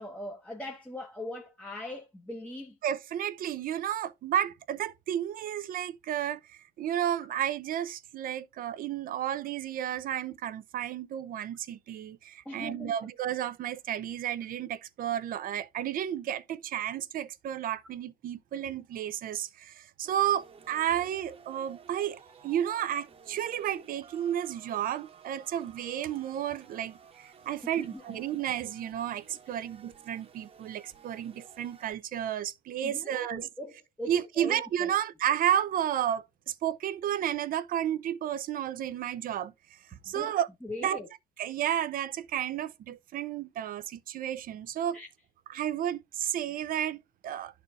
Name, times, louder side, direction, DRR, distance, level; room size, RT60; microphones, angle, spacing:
voice 1, 0.0-2.8 12.4-12.9 27.8-28.2 29.5-29.6 32.8-34.9 40.1-40.3 40.6-41.1 44.9-45.1, left 1 dB, 5° left, 1.0 m, -41 dB
voice 2, 2.8-33.5 34.1-40.5 40.8-41.0 41.4-45.0 45.5-47.6, right 10 dB, 55° right, 0.6 m, -32 dB
sound 1, 20.0-31.9, right 6 dB, 35° right, 1.2 m, -55 dB
12.0 x 4.1 x 2.4 m
cardioid pair, 110°, 17 cm